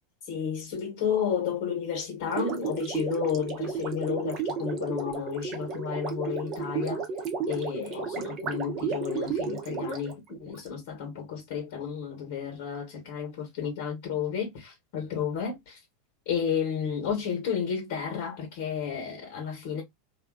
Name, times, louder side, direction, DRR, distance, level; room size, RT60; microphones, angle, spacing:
voice 1, 0.3-7.1 7.5-15.8 16.3-19.8, left 7 dB, 65° left, 1.0 m, -32 dB
Gurgling, 2.3-10.7, right 6 dB, 45° right, 0.7 m, -33 dB
2.6 x 2.2 x 2.2 m
hypercardioid pair, 95°, 0 cm